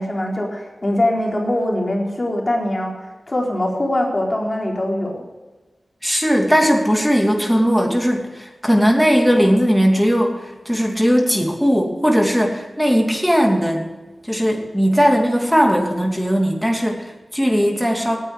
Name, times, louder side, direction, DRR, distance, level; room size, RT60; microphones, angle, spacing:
voice 1, 0.0-3.0 3.3-5.2, left 1 dB, 30° left, -1 dB, 4.2 m, -22 dB
voice 2, 6.0-13.9 14.3-18.2, equal, ahead, 1 dB, 2.7 m, -18 dB
18.0 x 9.9 x 5.0 m, 1.2 s
wide cardioid pair, 95°, 0 cm